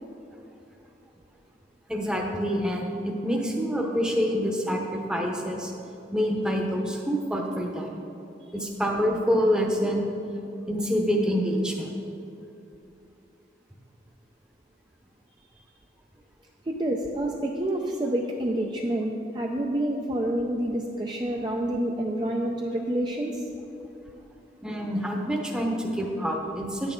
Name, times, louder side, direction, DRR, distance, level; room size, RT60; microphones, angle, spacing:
voice 1, 1.9-5.7 6.1-7.9 8.5-10.1 10.7-11.9 24.6-26.9, equal, 5° right, 0 dB, 0.8 m, -26 dB
voice 2, 16.7-23.4, right 1 dB, 25° right, 0 dB, 0.4 m, -28 dB
9.7 x 8.2 x 3.7 m, 2.8 s
head